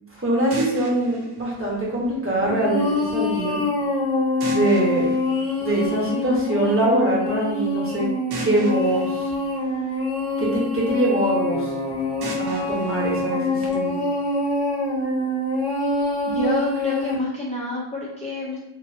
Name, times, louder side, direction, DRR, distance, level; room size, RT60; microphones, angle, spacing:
voice 1, 0.1-3.6 4.4-5.1 5.6-8.1 8.4-9.3 10.4-11.7 12.4-14.0, right 1 dB, 25° right, -6 dB, 0.9 m, -23 dB
sound 1, 0.5-2.5 4.4-6.4 8.3-10.5 12.2-14.2, right 1 dB, 55° right, 0.5 m, -38 dB
sound 2, 2.4-17.2, left 2 dB, 55° left, 0.8 m, -25 dB
voice 2, 16.3-18.6, left 1 dB, 15° left, -6 dB, 0.4 m, -28 dB
2.5 x 2.3 x 2.5 m, 0.84 s
wide cardioid pair, 90°, 49 cm